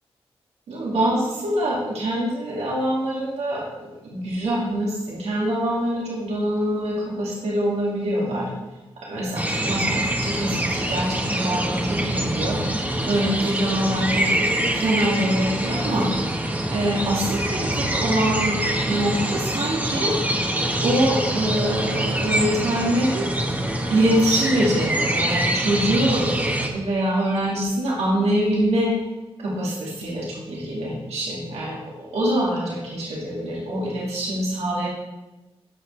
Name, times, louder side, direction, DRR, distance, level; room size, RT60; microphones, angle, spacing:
voice 1, 0.7-8.5 9.0-20.5 20.8-23.3 23.9-28.9 29.4-34.9, right 1 dB, 85° right, -5 dB, 2.5 m, -24 dB
sound 1, 9.4-26.7, right 1 dB, 15° right, 1.4 m, -25 dB
14.5 x 5.6 x 3.4 m, 1.1 s
cardioid pair, 60°, 11 cm